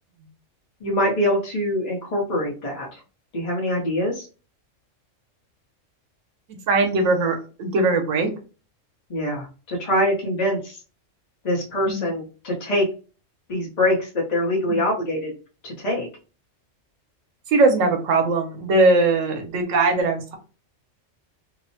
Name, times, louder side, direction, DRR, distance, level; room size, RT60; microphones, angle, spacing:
voice 1, 0.8-3.0 3.3-4.3 9.1-10.8 11.4-12.9 13.5-15.3 15.6-16.1, left 1 dB, 40° left, -3 dB, 0.8 m, -24 dB
voice 2, 6.7-8.3 11.9-12.1 14.7-14.8 17.5-20.4, right 3 dB, 85° right, 4 dB, 1.1 m, -20 dB
2.9 x 2.1 x 2.7 m, 0.34 s
omnidirectional pair, 1.3 m